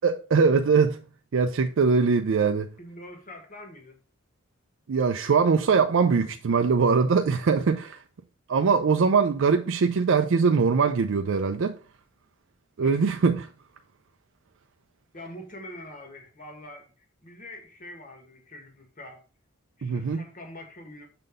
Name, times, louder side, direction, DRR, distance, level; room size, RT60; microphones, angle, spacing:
voice 1, 0.0-1.0 1.3-2.7 4.9-8.0 8.5-11.7 12.8-13.5 19.8-20.2, right 5 dB, 65° right, 0.4 m, -22 dB
voice 2, 2.8-4.0 12.8-13.2 15.1-19.2 19.8-21.1, left 1 dB, 40° left, 1.5 m, -44 dB
6.6 x 3.9 x 5.0 m
head